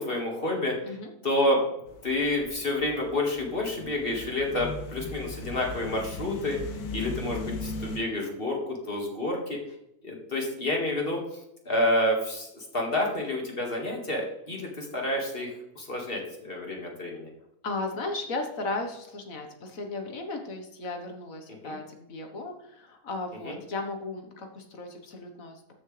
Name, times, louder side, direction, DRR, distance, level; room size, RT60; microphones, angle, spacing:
voice 1, 0.0-0.7 1.2-1.7 2.0-6.6 6.9-9.6 10.0-11.2 11.7-15.5 15.8-17.3 21.6-21.8 23.4-23.6, left 1 dB, 40° left, 0 dB, 2.2 m, -29 dB
sound 1, 1.9-8.0, left 3 dB, 90° left, 1.6 m, -38 dB
voice 2, 17.6-25.7, left 2 dB, 60° left, 4 dB, 1.8 m, -35 dB
13.5 x 6.4 x 3.3 m, 0.80 s
omnidirectional pair, 1.6 m